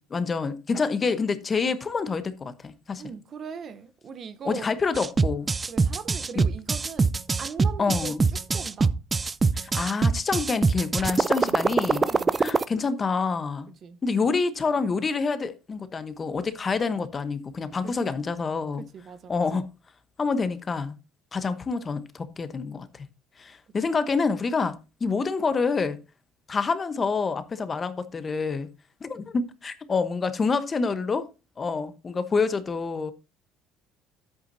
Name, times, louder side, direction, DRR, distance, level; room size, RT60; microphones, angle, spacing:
voice 1, 0.0-3.0 4.4-5.5 6.3-6.4 7.8-8.2 9.5-12.1 12.4-13.7 14.0-18.8 19.3-19.7 20.2-20.9 21.3-23.1 23.4-26.0 26.5-28.7 29.0-31.3 31.6-33.1, left 4 dB, 30° left, 1.0 m, -27 dB
voice 2, 3.0-4.7 5.7-8.9 11.1-12.4 13.8-14.0 17.8-18.2 18.8-19.6, right 6 dB, 45° right, 0.8 m, -40 dB
sound 1, 4.9-12.6, right 4 dB, 25° right, 0.4 m, -23 dB
10.0 x 8.2 x 2.7 m
supercardioid pair, 95°, 0 cm